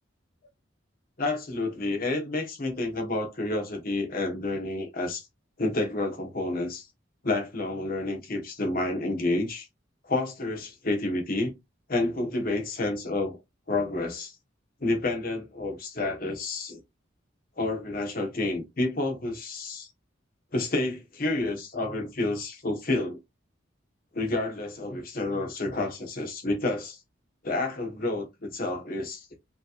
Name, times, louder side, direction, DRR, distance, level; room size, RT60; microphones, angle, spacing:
voice 1, 1.2-5.3 5.6-6.9 7.2-9.7 10.0-11.5 11.9-13.4 13.7-14.3 14.8-16.8 17.6-19.9 20.5-23.2 24.1-27.0 27.4-29.3, left 2 dB, 45° left, 1.4 m, -29 dB
5.3 x 3.4 x 2.5 m
head